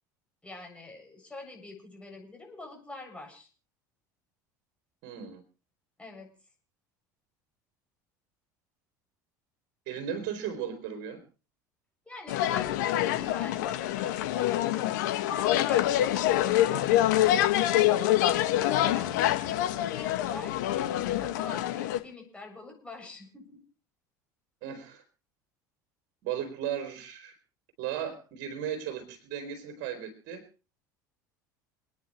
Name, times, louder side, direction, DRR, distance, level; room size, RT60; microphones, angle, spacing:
voice 1, 0.4-3.5 6.0-6.3 12.1-13.9 15.2-16.8 20.0-20.7 20.9-23.6, left 2 dB, 10° left, 2 dB, 7.4 m, -45 dB
voice 2, 5.0-5.4 9.9-11.2 24.6-25.0 26.2-27.4 27.8-30.5, right 9 dB, 60° right, 4 dB, 3.7 m, -36 dB
sound 1, 12.3-22.0, left 13 dB, 75° left, 1.8 m, -26 dB
29.0 x 9.9 x 3.2 m, 0.36 s
hypercardioid pair, 75°, 10 cm